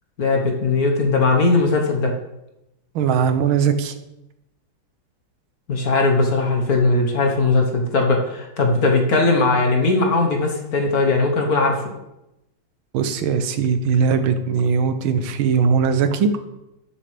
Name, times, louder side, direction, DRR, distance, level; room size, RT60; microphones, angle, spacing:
voice 1, 0.2-2.1 5.7-11.9, left 3 dB, 50° left, 2 dB, 1.6 m, -19 dB
voice 2, 3.0-3.9 12.9-16.3, right 6 dB, 85° right, 9 dB, 1.6 m, -19 dB
12.5 x 7.8 x 3.4 m, 0.92 s
omnidirectional pair, 2.2 m